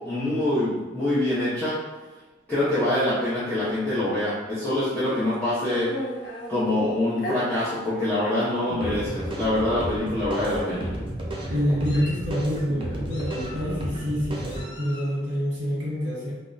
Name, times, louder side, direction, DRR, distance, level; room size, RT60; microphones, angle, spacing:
voice 1, 0.0-1.7 2.5-5.9 6.5-10.9, left 1 dB, 10° left, -13 dB, 0.7 m, -25 dB
Meow, 4.9-6.5 7.2-7.4 8.2-8.3 8.7-8.9 9.9-10.1 10.4-11.0 11.6-12.3 13.1-13.8 14.5-15.2, equal, 60° left, 0.6 m, -37 dB
sound 1, 8.7-14.7, right 1 dB, 25° right, 0.4 m, -33 dB
voice 2, 11.5-16.3, equal, 45° right, -8 dB, 1.1 m, -27 dB
3.6 x 2.1 x 2.5 m, 1.2 s
head